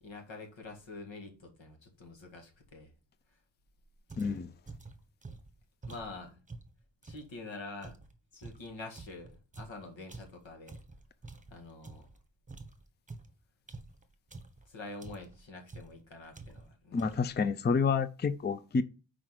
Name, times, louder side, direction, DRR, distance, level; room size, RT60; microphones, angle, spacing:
voice 1, 0.0-2.9 5.9-6.4 7.0-8.0 8.3-10.8 11.5-12.1 14.7-17.0, left 3 dB, 85° left, 2.0 m, -46 dB
sound 1, 4.1-7.3 7.8-12.2 12.5-14.7 15.0-15.4 15.7-16.0 16.3-16.7 17.0-17.4, right 3 dB, 15° right, 1.2 m, -48 dB
voice 2, 4.2-4.5 16.9-18.8, left 5 dB, 25° left, 0.5 m, -29 dB
5.7 x 5.0 x 4.7 m
wide cardioid pair, 80°, 44 cm